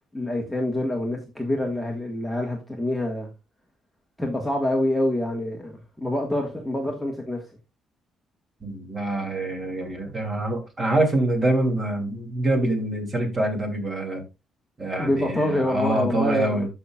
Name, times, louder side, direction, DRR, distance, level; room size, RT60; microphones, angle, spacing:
voice 1, 0.1-3.3 4.2-7.4 15.0-16.7, left 1 dB, ahead, 1.5 m, -26 dB
voice 2, 8.6-14.2 14.8-16.7, right 1 dB, 25° right, 3.0 m, -25 dB
14.0 x 5.7 x 2.4 m
cardioid pair, 135°, 0 cm